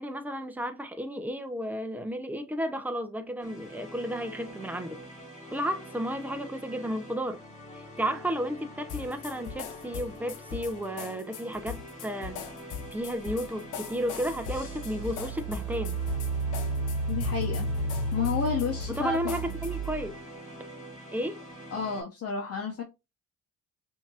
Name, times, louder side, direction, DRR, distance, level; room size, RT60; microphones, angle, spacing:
voice 1, 0.0-5.0 5.5-7.4 7.7-12.4 12.9-16.0 18.9-20.2 21.1-21.4, equal, 5° right, 0.7 m, -33 dB
sound 1, 3.4-22.0, equal, 25° left, 2.8 m, -46 dB
sound 2, 8.9-19.9, left 8 dB, 80° left, 0.9 m, -41 dB
Engine, 13.5-13.6 14.2-20.2, right 2 dB, 80° right, 0.6 m, -32 dB
voice 2, 17.1-17.7 18.1-19.2 21.7-22.8, left 5 dB, 50° left, 1.1 m, -31 dB
5.7 x 2.9 x 2.4 m
cardioid pair, 90°, 30 cm